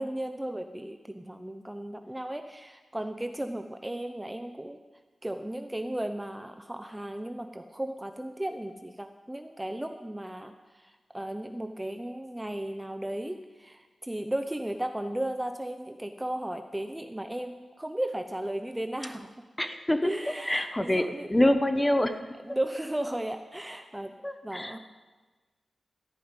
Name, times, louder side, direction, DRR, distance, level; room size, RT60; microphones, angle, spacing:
voice 1, 0.0-4.8 5.2-19.4 20.0-21.3 22.4-24.1 24.4-24.8, right 1 dB, 10° right, 7 dB, 0.7 m, -35 dB
voice 2, 19.6-20.1 20.5-22.2 24.2-24.8, left 1 dB, 15° left, 8 dB, 0.9 m, -26 dB
14.5 x 5.6 x 9.5 m, 1.3 s
wide cardioid pair, 85°, 0 cm